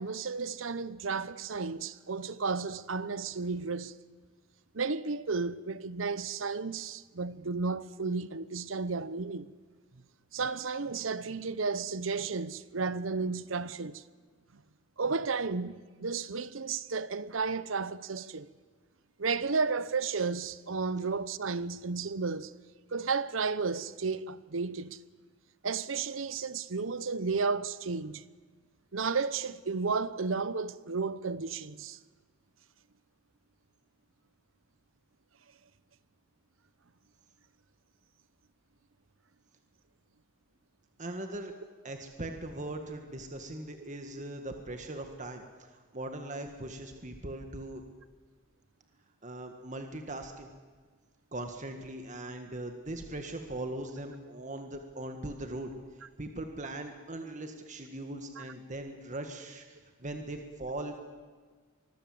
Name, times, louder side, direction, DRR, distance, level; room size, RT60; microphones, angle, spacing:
voice 1, 0.0-4.0 4.7-9.5 10.3-14.0 15.0-18.5 19.2-22.5 22.9-25.0 25.6-28.2 28.9-32.0 58.4-58.5, right 4 dB, 85° right, 0.9 m, -33 dB
voice 2, 41.0-41.5 41.8-45.4 45.7-47.8 49.2-50.5 51.3-55.7 56.2-61.0, right 1 dB, 40° right, 1.7 m, -40 dB
25.0 x 21.5 x 7.8 m
head